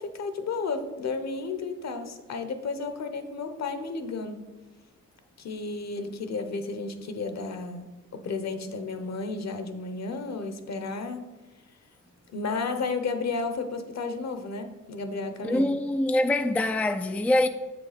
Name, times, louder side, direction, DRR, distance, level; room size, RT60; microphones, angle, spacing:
voice 1, 0.0-4.4 5.4-11.3 12.3-15.7, left 4 dB, 55° left, 0.9 m, -33 dB
voice 2, 15.4-17.5, left 1 dB, 5° left, 0.3 m, -24 dB
7.3 x 5.2 x 5.1 m
cardioid pair, 100°, 31 cm